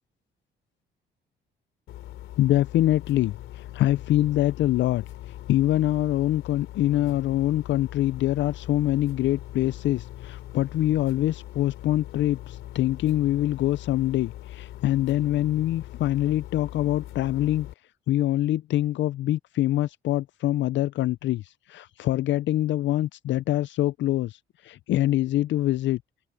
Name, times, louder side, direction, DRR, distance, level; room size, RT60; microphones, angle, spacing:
sound 1, 1.9-17.7, left 14 dB, 90° left, 3.4 m, -41 dB
voice 1, 2.4-5.0 5.5-17.7 18.1-26.0, left 14 dB, 70° left, 0.4 m, -24 dB
open air
cardioid pair, 90°, 20 cm